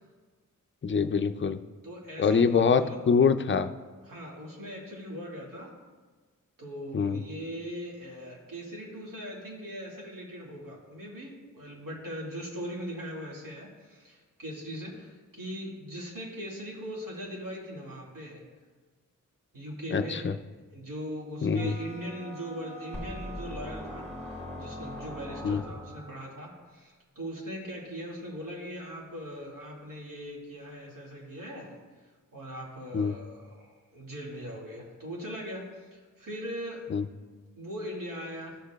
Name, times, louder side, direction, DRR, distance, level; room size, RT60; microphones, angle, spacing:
voice 1, 0.8-1.6 2.2-3.7 6.9-7.2 19.9-20.3 21.4-21.7 25.4-25.6 32.9-33.1 36.9-37.0, left 5 dB, 40° left, 10 dB, 0.4 m, -24 dB
voice 2, 1.8-3.0 4.0-5.8 6.6-18.4 19.5-20.3 20.7-31.8 32.0-36.9 37.6-38.6, equal, 80° right, -3 dB, 2.1 m, -40 dB
sound 1, 21.5-26.2, left 1 dB, 20° right, 0.8 m, -46 dB
sound 2, 22.9-26.2, left 1 dB, 5° left, 1.0 m, -41 dB
14.0 x 6.6 x 2.3 m, 1.3 s
wide cardioid pair, 105°, 32 cm